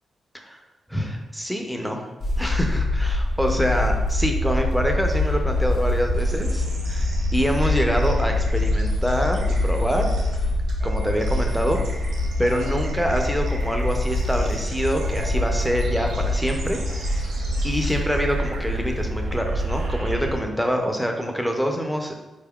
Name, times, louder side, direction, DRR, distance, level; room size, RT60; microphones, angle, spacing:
voice 1, 0.9-2.0 2.4-10.1 10.8-11.8 12.4-17.3 17.6-22.2, equal, ahead, 3 dB, 0.5 m, -25 dB
sound 1, 2.2-20.4, left 1 dB, 60° left, 1.1 m, -24 dB
sound 2, 6.1-20.7, right 2 dB, 85° right, 0.9 m, -40 dB
sound 3, 10.8-17.3, right 4 dB, 60° right, 0.3 m, -38 dB
4.1 x 3.5 x 2.3 m, 1.1 s
cardioid pair, 105°, 0 cm